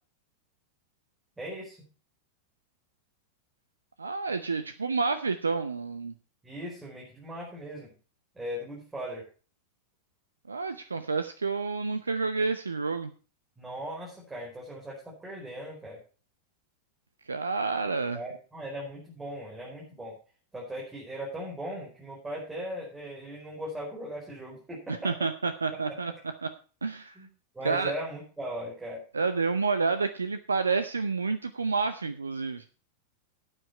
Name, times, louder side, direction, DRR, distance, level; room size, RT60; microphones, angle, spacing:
voice 1, 1.4-1.8 6.4-8.0 8.3-9.3 13.6-16.0 18.1-20.2 20.5-25.1 25.9-26.2 27.1-27.3 27.5-29.0, equal, 10° right, -4 dB, 5.0 m, -38 dB
voice 2, 4.0-6.1 10.5-13.1 17.3-18.2 24.9-26.1 26.4-26.5 26.8-27.1 27.6-27.9 29.1-32.6, right 4 dB, 75° right, 11 dB, 0.7 m, -29 dB
12.5 x 9.1 x 4.5 m, 0.37 s
figure-of-eight pair, 90°, 0 cm